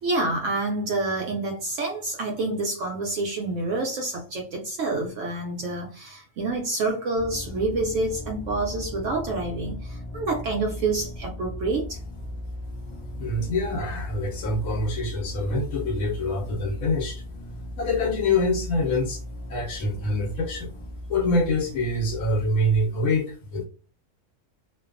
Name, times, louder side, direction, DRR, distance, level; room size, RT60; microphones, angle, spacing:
voice 1, 0.0-12.0, right 2 dB, 75° right, 1 dB, 0.9 m, -28 dB
sound 1, 7.1-22.8, left 1 dB, 40° left, 0.4 m, -37 dB
voice 2, 13.2-17.2 17.8-19.2 19.5-20.7 21.1-23.6, left 2 dB, 90° left, 0 dB, 1.1 m, -25 dB
2.5 x 2.2 x 2.4 m, 0.35 s
omnidirectional pair, 1.3 m